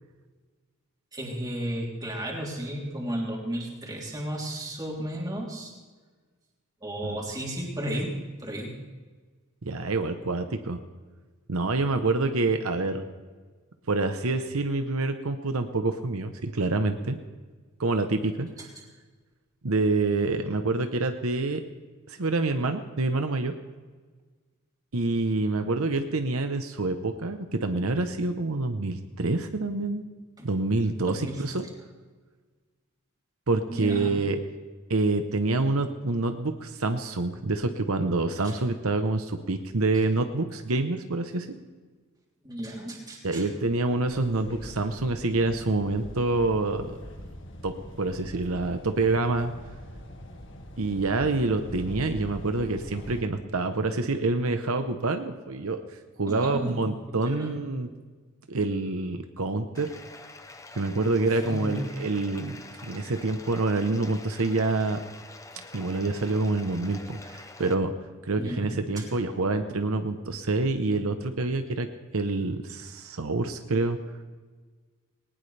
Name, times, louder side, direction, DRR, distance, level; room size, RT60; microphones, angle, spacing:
voice 1, 1.1-5.7 6.8-8.1 8.4-8.7 18.6-18.8 30.4-30.5 31.0-31.4 33.7-34.2 38.4-38.5 42.4-43.5 56.3-56.8 57.2-57.5 61.3-61.8 68.4-69.1, equal, 15° right, -2 dB, 3.4 m, -34 dB
voice 2, 9.6-10.8 11.5-13.0 13.9-17.2 17.8-18.5 19.6-21.6 22.1-23.5 24.9-30.0 30.4-31.6 33.5-34.4 34.9-41.6 43.2-47.0 47.6-49.5 50.8-57.9 58.5-59.9 60.7-65.0 65.7-67.9 68.2-71.9 72.1-74.0, right 3 dB, 75° right, 7 dB, 1.0 m, -27 dB
sound 1, 44.1-53.2, equal, 60° left, 1.8 m, -42 dB
Bathtub (filling or washing), 59.7-67.7, left 2 dB, 15° left, 0.8 m, -46 dB
20.0 x 19.0 x 3.4 m, 1.4 s
head